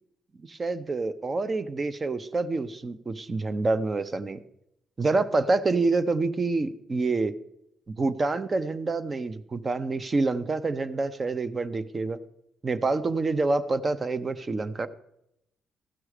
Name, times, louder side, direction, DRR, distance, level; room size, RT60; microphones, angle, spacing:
voice 1, 0.4-4.4 5.0-7.3 8.0-12.2 12.6-14.9, right 3 dB, 30° right, 13 dB, 0.7 m, -27 dB
15.0 x 6.1 x 4.9 m, 0.80 s
cardioid pair, 90°, 0 cm